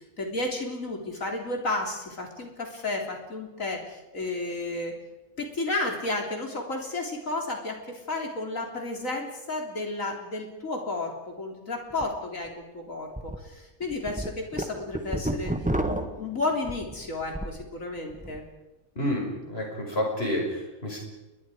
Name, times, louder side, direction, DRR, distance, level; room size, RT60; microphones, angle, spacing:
voice 1, 0.2-4.9 5.4-15.5 15.8-18.4, left 2 dB, 75° left, 2 dB, 3.9 m, -32 dB
sound 1, 11.9-12.1 12.5-12.6 13.2-13.4 13.8-17.6 18.0-18.4, right 1 dB, 5° right, 1.4 m, -31 dB
voice 2, 19.0-21.0, left 1 dB, 45° left, 0 dB, 6.0 m, -29 dB
30.0 x 21.5 x 5.0 m, 1.0 s
omnidirectional pair, 1.4 m